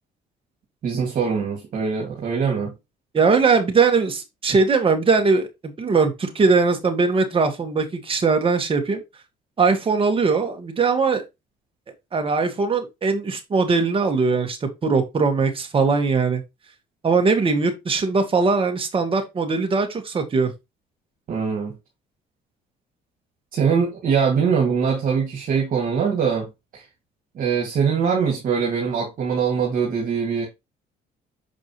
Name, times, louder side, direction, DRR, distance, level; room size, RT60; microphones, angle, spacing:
voice 1, 0.8-2.7 21.3-21.7 23.5-26.5 26.7-26.8 27.4-30.5, right 6 dB, 55° right, 2.2 m, -22 dB
voice 2, 3.1-9.0 9.6-11.2 12.1-16.4 17.0-20.5, right 4 dB, 30° right, 1.9 m, -20 dB
6.7 x 5.0 x 3.2 m
cardioid pair, 110°, 17 cm